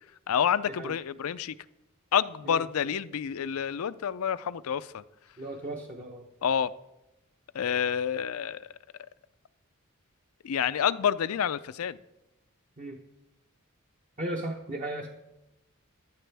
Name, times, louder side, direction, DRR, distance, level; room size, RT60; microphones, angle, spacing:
voice 1, 0.3-1.5 2.1-5.0 6.4-6.7 7.5-8.7 10.4-12.0, left 8 dB, 80° left, 15 dB, 0.4 m, -28 dB
voice 2, 5.4-6.2 12.8-13.0 14.2-15.1, right 1 dB, 35° right, 1 dB, 0.9 m, -36 dB
15.0 x 11.5 x 3.4 m, 0.96 s
head